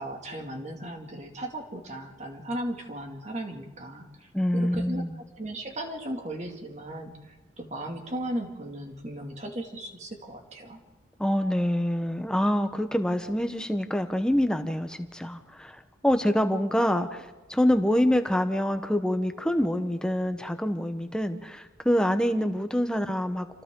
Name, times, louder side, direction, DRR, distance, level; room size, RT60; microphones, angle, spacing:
voice 1, 0.0-5.1 5.4-10.8, right 1 dB, 40° right, 2 dB, 2.4 m, -36 dB
voice 2, 4.3-5.2 11.2-23.5, equal, 5° left, 7 dB, 1.0 m, -26 dB
28.5 x 25.0 x 3.8 m, 1.2 s
head